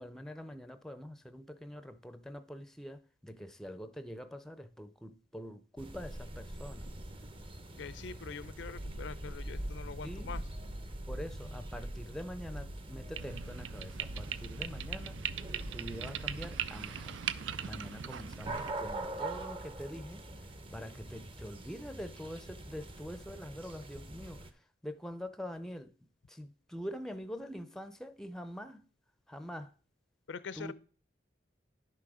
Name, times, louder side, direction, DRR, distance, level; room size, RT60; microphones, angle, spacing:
voice 1, 0.0-6.9 10.0-10.4 11.1-15.2 15.7-17.2 17.6-20.2 20.7-24.5 24.8-25.9 26.3-28.8 29.3-29.7 30.5-30.7, equal, 5° left, 0.5 m, -44 dB
sound 1, 5.8-24.5, right 2 dB, 30° right, 0.7 m, -45 dB
voice 2, 7.8-10.4 30.3-30.7, left 5 dB, 80° left, 0.5 m, -44 dB
sound 2, 8.4-16.8, right 1 dB, 70° right, 1.0 m, -44 dB
sound 3, 13.2-18.7, right 9 dB, 90° right, 0.5 m, -40 dB
11.0 x 6.1 x 4.9 m
head